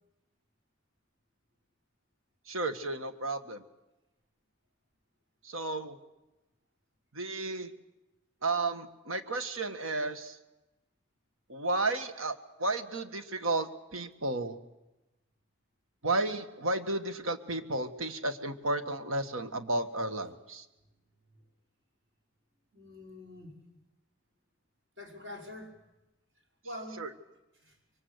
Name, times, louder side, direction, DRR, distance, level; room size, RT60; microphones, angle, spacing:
voice 1, 2.5-3.6 5.4-6.0 7.1-7.7 8.4-10.4 11.5-14.6 16.0-20.6 27.0-27.1, right 2 dB, 85° right, 9 dB, 1.7 m, -33 dB
voice 2, 22.7-23.6 25.0-25.8 26.6-27.1 27.5-27.8, left 1 dB, 60° right, 1 dB, 5.4 m, -45 dB
26.0 x 23.0 x 8.1 m, 1.0 s
head